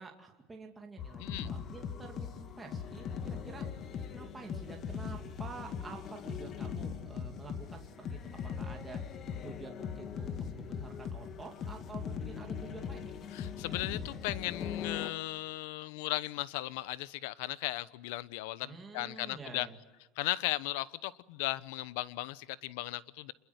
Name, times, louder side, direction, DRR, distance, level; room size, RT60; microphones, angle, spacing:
voice 1, 0.0-3.6 4.1-8.2 8.6-13.2 18.6-19.8, right 4 dB, 10° right, 2.5 m, -49 dB
sound 1, 1.0-15.1, left 7 dB, 35° left, 1.8 m, -40 dB
voice 2, 13.3-19.7 20.2-23.3, left 17 dB, 75° left, 1.0 m, -37 dB
27.5 x 21.5 x 8.1 m
cardioid pair, 150°, 0 cm